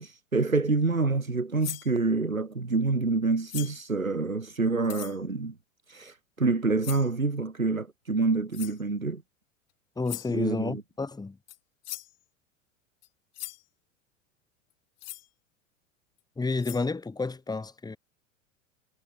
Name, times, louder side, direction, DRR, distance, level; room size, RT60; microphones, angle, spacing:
voice 1, 0.0-5.5 5.9-9.2 10.3-10.8, right 3 dB, 85° right, 3.3 m, -27 dB
sound 1, 1.6-1.9 3.5-3.9 4.8-5.2 6.8-7.1 8.5-8.8 10.1-10.4 11.5-11.6 11.8-12.2 13.0-13.1 13.3-13.6 15.0-15.3 16.2-16.3 16.6-16.9, left 16 dB, 40° left, 5.0 m, -40 dB
voice 2, 10.0-11.4 16.4-18.0, left 3 dB, 10° left, 2.5 m, -30 dB
figure-of-eight pair, 80°, 40 cm